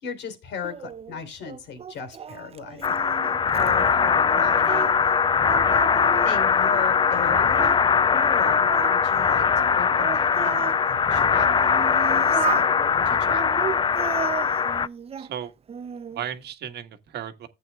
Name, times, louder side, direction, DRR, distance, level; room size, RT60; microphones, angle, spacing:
voice 1, 0.0-5.0 6.3-7.8 8.1-13.7, left 6 dB, 70° left, 3.6 m, -36 dB
Singing, 0.6-5.1 5.4-7.8 8.2-10.8 11.4-12.7 13.3-15.3 15.7-16.3, right 7 dB, 35° right, 0.6 m, -35 dB
sound 1, 2.8-14.9, left 6 dB, 25° left, 0.4 m, -21 dB
voice 2, 15.2-15.5 16.1-17.5, right 9 dB, 65° right, 1.5 m, -35 dB
14.0 x 8.4 x 2.3 m
cardioid pair, 95°, 19 cm